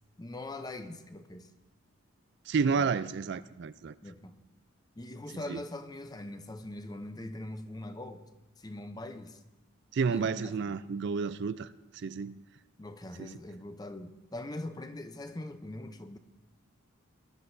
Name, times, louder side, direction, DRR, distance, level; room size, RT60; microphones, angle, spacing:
voice 1, 0.2-1.5 2.6-2.9 4.0-4.4 5.0-8.2 8.6-9.4 10.1-10.8 12.8-16.2, left 1 dB, 20° left, 0.6 m, -42 dB
voice 2, 2.5-3.9 5.5-5.6 9.9-11.7 12.0-12.4 13.2-13.3, right 5 dB, 55° right, 0.4 m, -30 dB
21.0 x 11.5 x 2.7 m
head